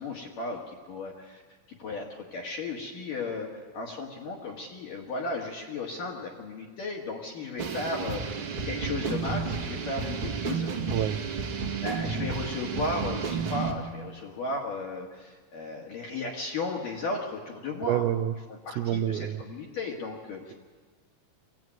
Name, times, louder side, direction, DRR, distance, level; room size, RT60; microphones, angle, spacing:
voice 1, 0.0-1.4 1.8-10.7 11.8-18.1 18.5-20.5, left 3 dB, 55° left, -1 dB, 2.8 m, -35 dB
sound 1, 7.6-13.7, right 5 dB, 50° right, 1.7 m, -32 dB
voice 2, 17.9-18.3 18.8-19.4, right 11 dB, 85° right, 12 dB, 3.5 m, -27 dB
25.0 x 16.5 x 9.3 m, 1.4 s
omnidirectional pair, 5.9 m